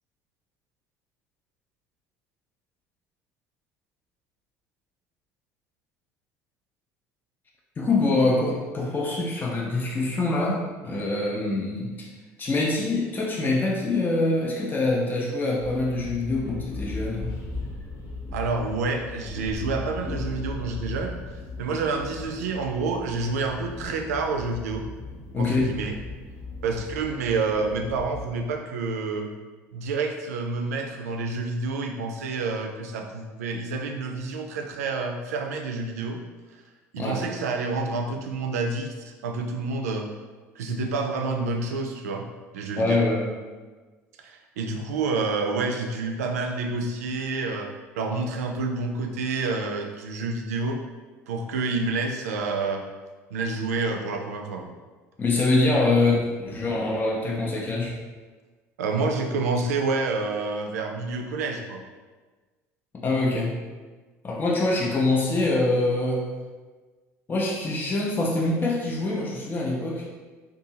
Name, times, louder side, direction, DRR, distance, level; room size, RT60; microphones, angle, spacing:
voice 1, 7.8-12.1 12.4-17.3 25.3-25.7 37.0-37.2 42.8-43.3 55.2-58.0 63.0-63.6 64.2-66.3 67.3-70.1, left 2 dB, 25° left, -2 dB, 0.5 m, -24 dB
sound 1, 15.6-28.3, left 2 dB, 55° left, 0.8 m, -37 dB
voice 2, 18.3-21.2 21.6-24.8 25.4-25.9 26.6-29.3 29.7-36.2 36.5-36.6 36.9-40.1 40.6-42.3 42.5-43.1 44.2-50.8 51.3-52.8 53.3-54.7 58.8-61.8, right 3 dB, 80° right, 3 dB, 0.3 m, -28 dB
2.6 x 2.3 x 2.7 m, 1.3 s
hypercardioid pair, 65°, 8 cm